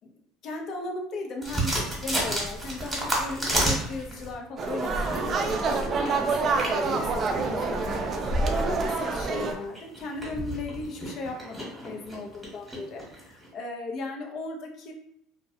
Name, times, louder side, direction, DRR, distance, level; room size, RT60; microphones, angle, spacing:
voice 1, 0.4-14.9, left 3 dB, 55° left, 2 dB, 0.5 m, -37 dB
Chocolade Eating, 1.4-4.4 4.9-13.5, right 1 dB, 10° right, 1.1 m, -32 dB
sound 1, 4.6-9.6, right 3 dB, 40° right, 0.4 m, -27 dB
2.4 x 2.1 x 2.6 m, 0.73 s
supercardioid pair, 100°, 0 cm